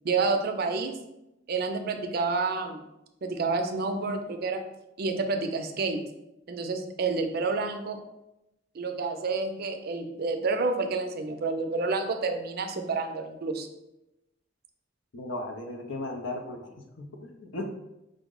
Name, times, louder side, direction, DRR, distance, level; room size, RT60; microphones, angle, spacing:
voice 1, 0.0-1.0 1.5-2.8 3.2-4.6 5.0-6.0 6.5-8.0 8.7-13.7, right 4 dB, 50° right, 6 dB, 0.4 m, -29 dB
voice 2, 15.1-16.6 17.0-17.7, left 2 dB, 80° left, 4 dB, 0.6 m, -36 dB
5.0 x 2.0 x 3.7 m, 0.91 s
head